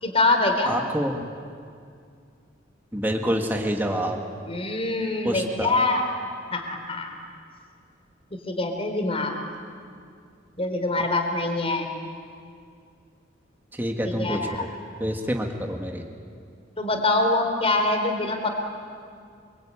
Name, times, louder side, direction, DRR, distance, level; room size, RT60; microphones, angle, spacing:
voice 1, 0.0-0.7 4.4-6.2 6.5-7.1 8.5-9.3 10.6-11.9 14.0-14.7 16.8-18.5, left 2 dB, 30° left, 5 dB, 3.8 m, -24 dB
voice 2, 0.7-1.3 2.9-4.2 5.3-5.8 13.8-14.7 15.0-16.0, equal, 10° right, 2 dB, 1.9 m, -27 dB
27.0 x 24.5 x 8.9 m, 2.3 s
head